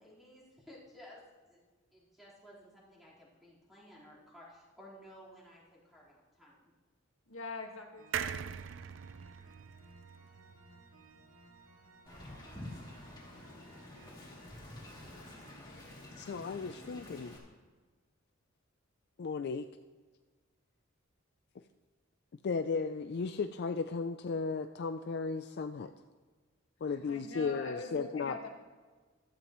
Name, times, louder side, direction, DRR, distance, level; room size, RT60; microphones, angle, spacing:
voice 1, 0.0-1.6 1.9-6.7, equal, ahead, -8 dB, 4.0 m, -56 dB
voice 2, 7.3-8.4 27.1-28.5, left 3 dB, 75° left, 2 dB, 1.7 m, -43 dB
sound 1, 8.0-15.6, right 2 dB, 85° right, 2.2 m, -60 dB
sound 2, 8.1-11.6 12.0-12.1 12.3-12.4, right 8 dB, 65° right, 0.5 m, -41 dB
Wind, 12.1-17.4, left 1 dB, 20° left, 2.7 m, -49 dB
voice 3, 16.2-17.4 19.2-19.7 22.4-25.9 26.8-28.5, left 4 dB, 55° left, 9 dB, 0.4 m, -35 dB
15.0 x 13.0 x 3.1 m, 1.4 s
head